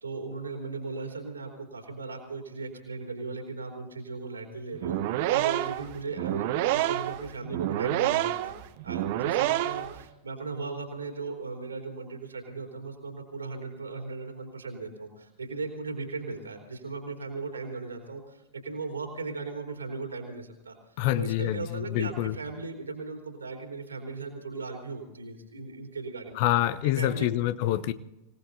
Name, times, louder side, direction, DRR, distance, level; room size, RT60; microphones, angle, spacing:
voice 1, 0.0-5.0 5.3-8.5 8.8-26.4 26.8-27.3, right 3 dB, 75° right, 3 dB, 3.4 m, -37 dB
sound 1, 4.7-10.0, right 14 dB, 50° right, 0.9 m, -28 dB
voice 2, 21.0-22.3 26.4-27.9, left 13 dB, 50° left, 16 dB, 0.8 m, -26 dB
26.0 x 18.0 x 2.7 m, 0.91 s
figure-of-eight pair, 90°, 0 cm